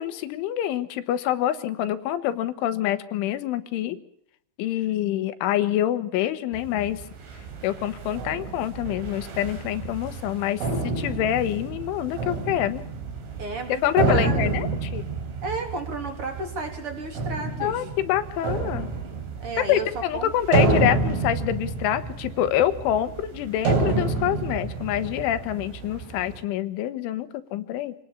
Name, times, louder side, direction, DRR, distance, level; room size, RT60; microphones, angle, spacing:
voice 1, 0.0-4.0 4.6-7.0 7.6-10.6 11.0-12.8 13.7-15.1 17.6-18.9 19.7-27.9, left 12 dB, 85° left, 12 dB, 3.6 m, -26 dB
sound 1, 6.5-26.4, right 3 dB, 85° right, 6.2 m, -29 dB
voice 2, 13.4-14.7 15.4-17.9 19.4-19.9 20.1-20.3, right 3 dB, 30° right, 5 dB, 3.8 m, -33 dB
26.0 x 19.0 x 7.2 m, 0.74 s
omnidirectional pair, 5.5 m